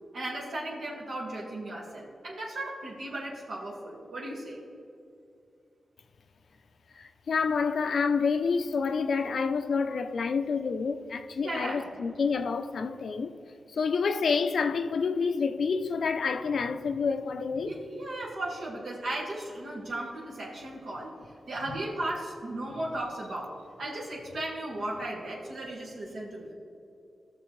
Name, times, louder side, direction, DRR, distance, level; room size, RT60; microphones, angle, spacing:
voice 1, 0.1-4.6 11.4-11.8 17.6-21.1 21.5-23.5 23.8-26.5, right 1 dB, 80° right, 2.1 m, -36 dB
voice 2, 7.0-13.3 13.7-17.8, left 5 dB, 70° left, 0.5 m, -28 dB
16.0 x 6.7 x 3.2 m
wide cardioid pair, 110°, 0 cm